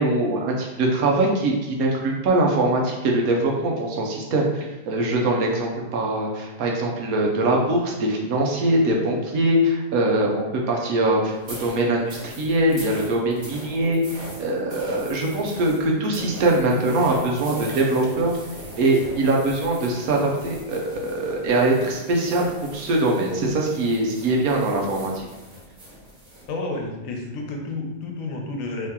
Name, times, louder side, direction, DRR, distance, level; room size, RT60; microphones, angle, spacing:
voice 1, 0.0-14.0 14.4-18.4 18.8-25.3, right 2 dB, 90° right, 0 dB, 1.2 m, -22 dB
Footsteps in Sand, 11.4-26.5, right 1 dB, 65° right, 1.5 m, -40 dB
voice 2, 26.5-28.9, left 2 dB, 70° left, 1 dB, 1.0 m, -30 dB
3.1 x 2.8 x 3.6 m, 1.1 s
omnidirectional pair, 1.5 m